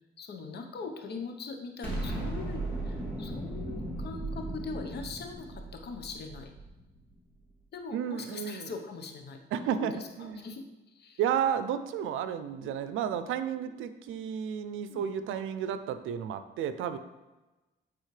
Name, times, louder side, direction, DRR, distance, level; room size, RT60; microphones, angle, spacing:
voice 1, 0.2-6.5 7.7-9.9 10.2-10.6 10.9-11.2 12.6-12.7 13.6-13.7 14.9-15.0, left 4 dB, 55° left, 4 dB, 1.0 m, -41 dB
Explosion, 1.8-7.0, right 2 dB, 5° left, 2.1 m, -36 dB
voice 2, 7.9-8.7 9.5-10.5 11.2-17.0, right 8 dB, 85° right, 11 dB, 0.5 m, -32 dB
9.3 x 4.0 x 3.3 m, 1.1 s
cardioid pair, 90°, 20 cm